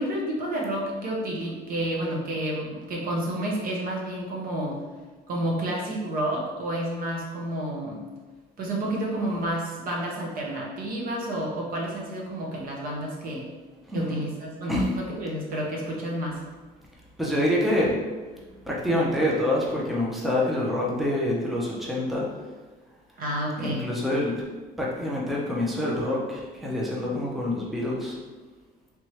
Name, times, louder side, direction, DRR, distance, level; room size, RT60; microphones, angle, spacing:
voice 1, 0.0-4.8 5.3-8.0 8.6-13.4 13.9-16.4 23.2-23.9, right 1 dB, 55° right, -2 dB, 1.0 m, -30 dB
voice 2, 13.9-14.2 14.7-14.9 17.2-18.0 18.6-22.3 23.6-24.4 24.8-28.2, left 1 dB, ahead, -4 dB, 0.7 m, -26 dB
3.5 x 2.9 x 3.2 m, 1.3 s
cardioid pair, 110°, 17 cm